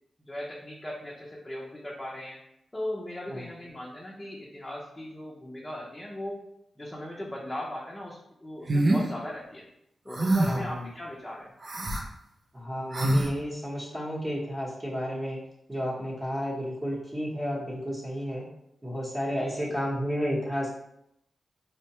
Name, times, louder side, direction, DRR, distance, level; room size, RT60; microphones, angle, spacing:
voice 1, 0.2-2.4 2.7-6.4 6.8-9.7 10.0-11.5 19.4-19.5, left 1 dB, 15° left, -4 dB, 0.6 m, -38 dB
sound 1, 8.7-9.0 10.1-10.7 11.6-12.0 12.9-13.3, right 1 dB, 45° right, 0.5 m, -24 dB
voice 2, 10.5-10.9 12.5-15.4 15.7-18.4 18.8-20.7, equal, 20° right, -5 dB, 1.0 m, -32 dB
4.4 x 2.2 x 2.9 m, 0.80 s
cardioid pair, 70°, 0 cm